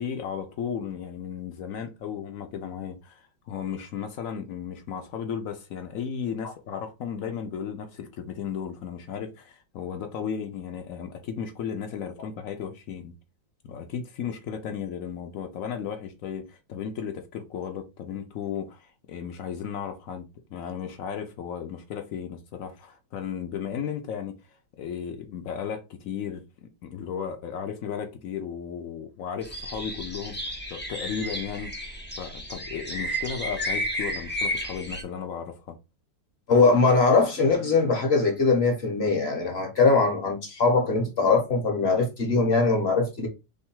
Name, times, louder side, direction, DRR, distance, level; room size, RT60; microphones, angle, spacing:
voice 1, 0.0-13.2 13.6-20.2 20.5-24.4 24.8-30.4 30.7-31.7 32.2-35.8, left 7 dB, 70° left, 0.8 m, -35 dB
sound 1, 29.4-35.0, equal, 15° left, 0.4 m, -32 dB
voice 2, 36.5-43.3, left 4 dB, 40° left, 1.0 m, -21 dB
3.5 x 3.2 x 4.5 m
omnidirectional pair, 2.2 m